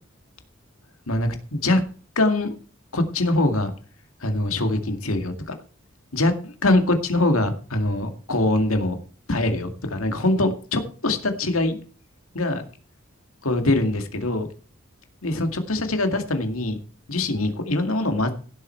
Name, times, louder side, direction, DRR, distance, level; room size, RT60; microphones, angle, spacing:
voice 1, 1.1-1.8 2.2-2.5 2.9-3.7 4.2-5.5 6.1-9.0 9.3-11.8 12.3-12.6 13.4-14.5 15.2-16.8 17.1-18.3, left 2 dB, 85° left, 6 dB, 2.2 m, -23 dB
16.0 x 7.8 x 4.6 m, 0.40 s
head